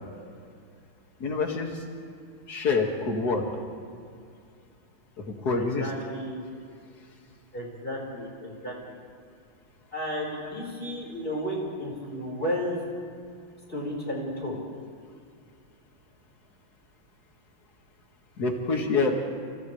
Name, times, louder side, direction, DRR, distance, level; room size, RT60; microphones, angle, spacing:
voice 1, 1.2-1.8 2.5-3.4 5.3-5.9 10.4-10.5 18.4-19.1, left 4 dB, 50° left, 1 dB, 2.7 m, -26 dB
voice 2, 5.5-6.4 7.5-8.9 9.9-12.8 13.7-14.6, equal, 25° left, -3 dB, 5.4 m, -33 dB
30.0 x 29.0 x 3.4 m, 2.3 s
omnidirectional pair, 2.2 m